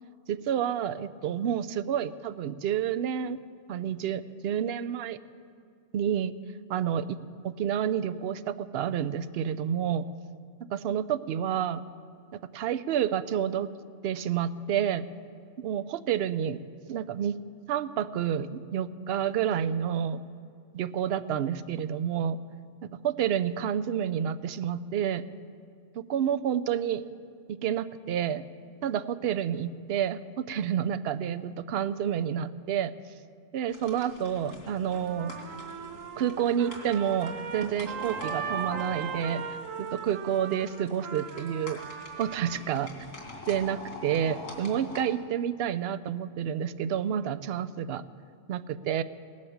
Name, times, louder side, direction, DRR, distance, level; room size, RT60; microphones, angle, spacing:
voice 1, 0.3-3.4 3.7-5.2 5.9-6.3 6.7-10.1 10.7-11.8 12.5-13.7 14.0-15.0 15.6-16.6 16.9-17.4 17.7-20.2 20.7-22.4 23.0-25.2 25.9-27.0 27.5-28.4 28.8-32.9 33.5-35.3 36.2-39.4 39.8-41.8 42.2-42.9 43.5-48.0 48.5-49.0, right 9 dB, 60° right, 14 dB, 0.7 m, -29 dB
sound 1, 33.7-45.0, left 2 dB, 90° left, 2.6 m, -44 dB
Trumpet, 34.9-42.6, right 7 dB, 90° right, 1.2 m, -38 dB
18.0 x 10.5 x 7.2 m, 2.3 s
omnidirectional pair, 1.3 m